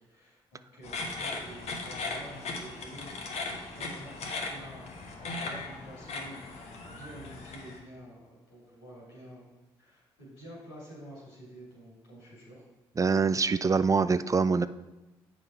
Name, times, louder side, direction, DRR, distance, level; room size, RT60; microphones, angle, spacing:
voice 1, 0.1-9.5 9.8-12.6, equal, 90° left, -6 dB, 2.7 m, -49 dB
sound 1, 0.8-7.8, left 3 dB, 65° left, 1.2 m, -38 dB
voice 2, 13.0-14.7, right 5 dB, 25° right, 14 dB, 0.3 m, -24 dB
7.4 x 5.1 x 4.3 m, 1.0 s
hypercardioid pair, 45°, 12 cm